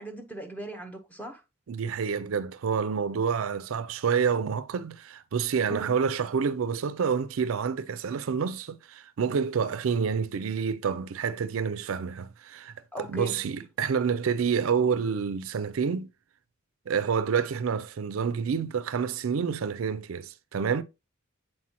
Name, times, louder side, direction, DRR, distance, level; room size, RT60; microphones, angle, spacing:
voice 1, 0.0-1.4 5.7-5.9 12.9-13.4, right 1 dB, 10° left, 0.9 m, -38 dB
voice 2, 1.7-16.1 16.9-20.8, right 6 dB, 80° right, 0.4 m, -28 dB
7.4 x 4.5 x 2.9 m
head